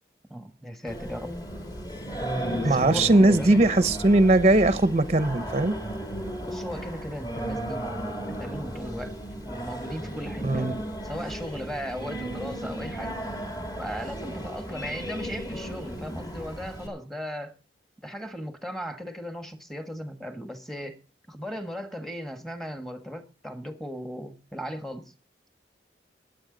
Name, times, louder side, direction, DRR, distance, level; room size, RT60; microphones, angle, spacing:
voice 1, 0.3-1.3 2.6-3.6 6.4-7.8 8.3-10.7 11.0-13.2 13.8-17.6 18.0-21.0 21.3-25.1, equal, ahead, 1.5 m, -37 dB
Singing, 0.9-16.9, equal, 20° left, 2.3 m, -34 dB
voice 2, 2.6-5.8 10.4-10.8, right 2 dB, 35° right, 0.8 m, -20 dB
22.5 x 8.1 x 3.9 m
head